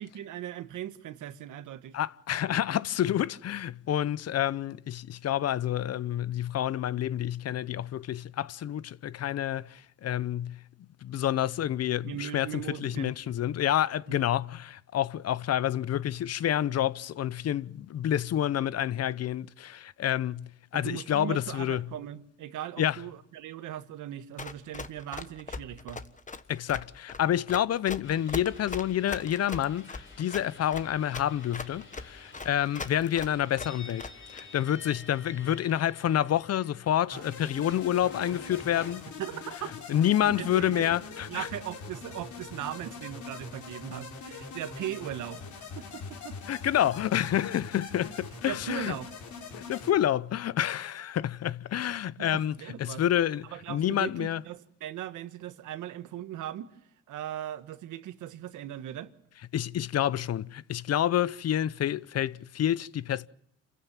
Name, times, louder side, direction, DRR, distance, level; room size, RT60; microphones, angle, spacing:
voice 1, 0.0-2.0 12.0-13.2 14.1-14.2 20.7-26.0 37.1-37.3 39.2-39.7 40.2-41.0 41.3-46.4 48.5-49.1 52.2-53.0 53.5-56.7 57.1-59.1, right 11 dB, 80° right, 1.5 m, -39 dB
voice 2, 1.9-10.6 11.0-21.9 22.8-23.0 26.5-39.0 39.9-41.5 46.5-48.9 49.5-52.5 52.8-54.4 59.5-63.3, left 11 dB, 55° left, 0.7 m, -28 dB
Run, 24.4-34.4, left 4 dB, 25° left, 1.3 m, -39 dB
sound 1, 28.0-38.9, left 3 dB, 40° left, 4.1 m, -50 dB
sound 2, 37.1-49.9, left 4 dB, 75° left, 4.5 m, -43 dB
27.5 x 15.5 x 7.4 m
cardioid pair, 90°, 30 cm